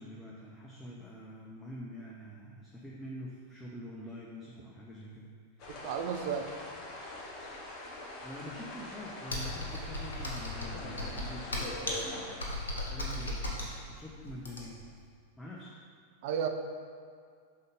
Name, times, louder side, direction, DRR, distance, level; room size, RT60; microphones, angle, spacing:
voice 1, 0.0-5.4 8.2-13.6 13.9-14.9 15.4-15.7, equal, 5° left, -4 dB, 0.7 m, -46 dB
sound 1, 5.6-12.9, left 2 dB, 35° left, 1.0 m, -43 dB
voice 2, 5.7-6.5 16.2-16.5, right 7 dB, 50° right, 5 dB, 0.5 m, -33 dB
Computer keyboard, 9.3-14.9, left 1 dB, 70° left, 1.0 m, -36 dB
5.4 x 3.8 x 5.2 m, 2.1 s
figure-of-eight pair, 90°, 0 cm